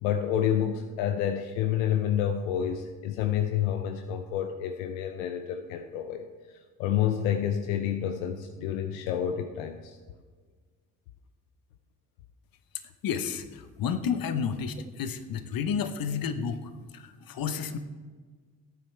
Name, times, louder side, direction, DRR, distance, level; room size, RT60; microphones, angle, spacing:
voice 1, 0.0-6.3 6.8-10.0, left 9 dB, 85° left, 7 dB, 0.6 m, -29 dB
voice 2, 13.0-17.8, left 6 dB, 60° left, 10 dB, 1.0 m, -31 dB
16.5 x 9.2 x 3.3 m, 1.5 s
hypercardioid pair, 45°, 39 cm